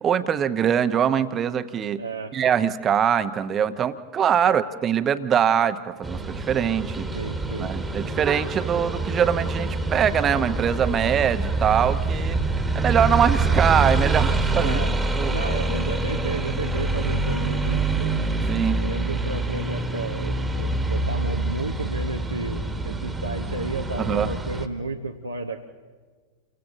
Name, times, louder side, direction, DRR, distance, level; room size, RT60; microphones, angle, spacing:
voice 1, 0.0-2.0 2.3-7.1 7.6-12.4 12.7-14.8 15.2-15.3 18.5-18.8 24.0-24.3, right 8 dB, 25° right, 12 dB, 0.9 m, -23 dB
voice 2, 2.0-2.3 4.4-4.5 7.1-7.7 14.6-14.9 15.3-18.2 18.8-25.7, right 3 dB, 80° right, 2 dB, 0.9 m, -32 dB
sound 1, 6.0-24.7, right 2 dB, 10° right, 1.5 m, -26 dB
29.5 x 23.5 x 3.9 m, 1.5 s
figure-of-eight pair, 90°, 0 cm